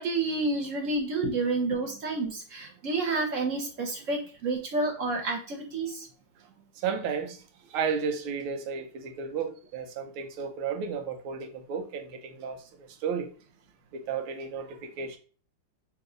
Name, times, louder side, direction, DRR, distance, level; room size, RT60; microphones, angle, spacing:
voice 1, 0.0-6.1, right 3 dB, 60° right, 0.8 m, -29 dB
voice 2, 6.8-7.4 7.7-12.6 13.0-13.3 14.1-15.2, right 6 dB, 90° right, 1.6 m, -33 dB
3.5 x 2.9 x 4.8 m
omnidirectional pair, 2.3 m